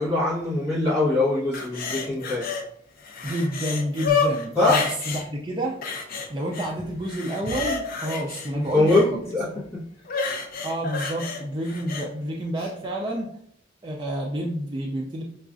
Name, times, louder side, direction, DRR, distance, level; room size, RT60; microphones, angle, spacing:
voice 1, 0.0-2.5 4.5-4.9 8.5-9.8, left 2 dB, 15° left, -11 dB, 1.1 m, -23 dB
sound 1, 1.5-2.6 3.0-5.2 5.8-6.7 7.0-9.1 10.1-12.1 12.6-12.7, left 5 dB, 50° left, 0.6 m, -29 dB
voice 2, 3.2-5.8 6.3-9.0 10.6-13.3 13.8-15.2, right 1 dB, 25° right, -2 dB, 0.4 m, -29 dB
5.7 x 2.3 x 2.5 m, 0.66 s
head